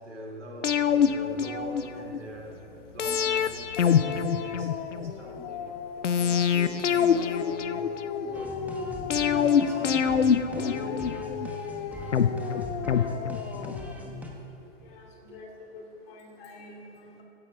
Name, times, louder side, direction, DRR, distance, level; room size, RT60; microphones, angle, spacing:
voice 1, 0.0-11.1 13.6-13.7 14.2-15.4, right 1 dB, 85° right, -1 dB, 3.2 m, -44 dB
sound 1, 0.6-2.2 3.0-5.1 6.0-8.3 9.1-11.5 12.1-13.8 14.1-14.2, left 7 dB, 85° left, 0.7 m, -25 dB
Dog, 3.8-6.6 7.0-10.1 10.5-14.1, left 8 dB, 30° left, 0.5 m, -36 dB
sound 2, 8.3-14.3, right 1 dB, 5° right, 1.3 m, -41 dB
voice 2, 14.8-17.2, left 2 dB, 55° left, 0 dB, 2.8 m, -47 dB
16.5 x 10.5 x 3.8 m, 2.7 s
hypercardioid pair, 120°, 35 cm